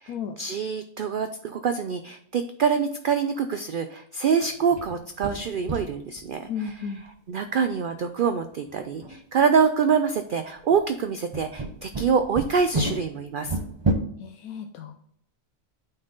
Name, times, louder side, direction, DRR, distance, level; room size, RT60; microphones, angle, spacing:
voice 1, 0.0-6.7 7.3-13.6, right 6 dB, 90° right, 9 dB, 0.4 m, -25 dB
sound 1, 4.4-6.3 6.7-6.8 7.0-7.1 8.7-9.2 10.6-10.8 11.3-13.9, right 2 dB, 30° right, 0.5 m, -30 dB
voice 2, 6.5-7.0 14.2-15.1, left 7 dB, 90° left, 4 dB, 1.1 m, -34 dB
9.0 x 4.0 x 3.9 m, 0.68 s
omnidirectional pair, 1.4 m